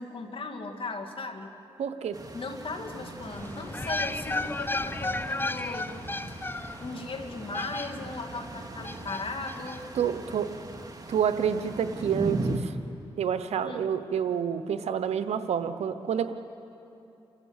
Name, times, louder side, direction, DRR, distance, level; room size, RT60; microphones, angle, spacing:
voice 1, 0.0-1.5 2.3-5.9 6.3-6.4 6.8-9.8 13.6-13.9, left 3 dB, 55° left, 5 dB, 2.3 m, -37 dB
voice 2, 1.8-2.2 9.9-10.5 11.1-12.8 13.2-16.3, right 8 dB, 85° right, 11 dB, 0.9 m, -28 dB
sound 1, 2.1-12.6, right 2 dB, 35° right, 2.5 m, -39 dB
sound 2, 3.3-8.3 8.8-9.8 10.0-10.1, left 2 dB, 20° left, 0.7 m, -34 dB
28.0 x 15.0 x 8.1 m, 2.9 s
cardioid pair, 50°, 11 cm